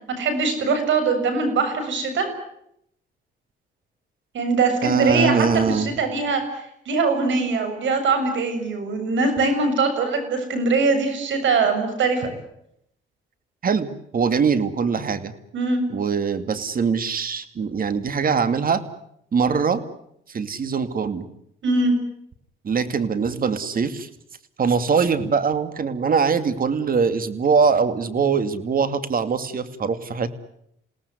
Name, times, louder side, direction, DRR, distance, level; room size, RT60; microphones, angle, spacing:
voice 1, 0.1-2.3 4.3-12.3 15.5-15.8 21.6-21.9, right 4 dB, 70° right, 8 dB, 7.3 m, -22 dB
voice 2, 4.8-5.9 13.6-15.3 15.9-18.8 19.3-19.8 20.3-21.3 22.6-24.1 24.6-30.4, right 5 dB, 45° right, 11 dB, 2.5 m, -22 dB
28.5 x 18.5 x 9.7 m, 0.76 s
cardioid pair, 90°, 20 cm